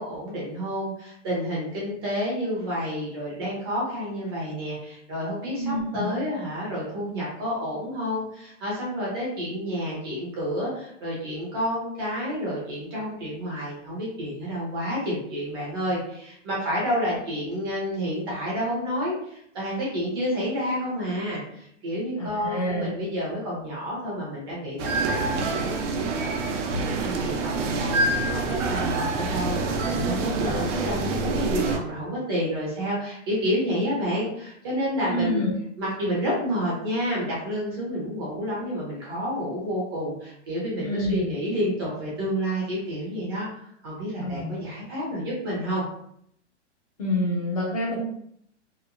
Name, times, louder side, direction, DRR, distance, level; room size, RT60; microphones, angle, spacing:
voice 1, 0.0-26.5 26.8-35.5 35.8-43.5 43.8-45.8, equal, 20° right, -5 dB, 0.5 m, -29 dB
voice 2, 5.6-6.2 22.2-22.9 35.0-35.5 40.8-41.3 44.2-44.5 47.0-48.0, left 1 dB, 30° left, -3 dB, 0.4 m, -27 dB
sound 1, 24.8-31.8, right 3 dB, 80° right, 0.6 m, -26 dB
2.9 x 2.1 x 2.4 m, 0.69 s
hypercardioid pair, 170°, 36 cm